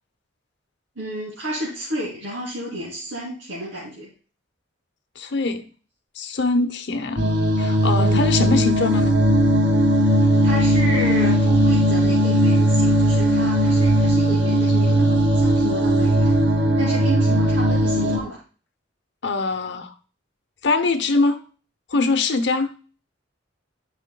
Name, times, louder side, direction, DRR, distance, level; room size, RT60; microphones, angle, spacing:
voice 1, 1.0-4.1 8.0-8.3 10.4-16.3 16.8-18.4, right 1 dB, 90° right, -7 dB, 2.8 m, -31 dB
voice 2, 5.2-5.7 6.2-9.2 19.2-19.9 20.6-21.4 21.9-22.7, left 3 dB, 65° left, 8 dB, 0.9 m, -23 dB
sound 1, 7.2-18.2, right 1 dB, 65° right, 1.4 m, -18 dB
11.5 x 5.7 x 2.3 m, 0.39 s
head